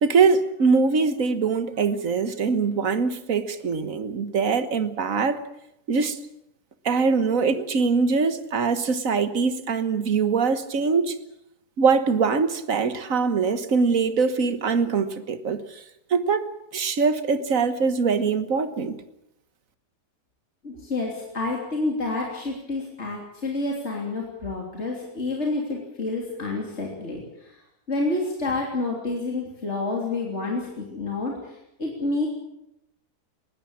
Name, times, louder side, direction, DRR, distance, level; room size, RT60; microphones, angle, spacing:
voice 1, 0.0-5.4 5.9-6.2 6.8-11.2 11.8-15.6 16.1-16.4 16.7-19.0, right 5 dB, 60° right, 11 dB, 1.8 m, -22 dB
voice 2, 20.6-27.6 27.9-32.3, left 2 dB, 45° left, -1 dB, 3.6 m, -29 dB
21.0 x 17.0 x 8.8 m, 0.85 s
omnidirectional pair, 1.6 m